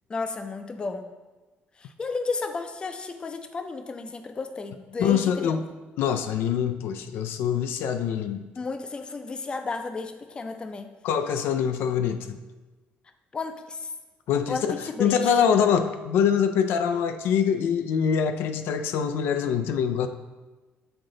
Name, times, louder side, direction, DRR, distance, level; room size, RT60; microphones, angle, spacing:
voice 1, 0.1-1.1 1.8-5.6 8.6-10.9 13.3-13.9 14.5-14.7 15.0-15.4, left 4 dB, 25° left, 8 dB, 0.5 m, -33 dB
voice 2, 5.0-5.7 6.0-8.4 11.0-12.4 14.3-20.1, left 7 dB, 85° left, 8 dB, 0.4 m, -24 dB
8.0 x 3.8 x 3.8 m, 1.2 s
cardioid pair, 135°, 4 cm